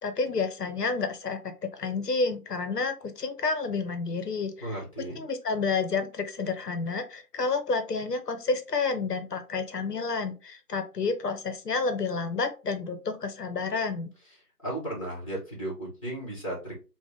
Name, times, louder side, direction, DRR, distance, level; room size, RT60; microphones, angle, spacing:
voice 1, 0.0-4.7 5.1-14.1, left 4 dB, 85° left, 8 dB, 0.9 m, -30 dB
voice 2, 4.6-5.2 14.6-16.8, right 1 dB, 20° left, -4 dB, 1.4 m, -35 dB
3.6 x 2.4 x 3.4 m, 0.32 s
figure-of-eight pair, 165°, 47 cm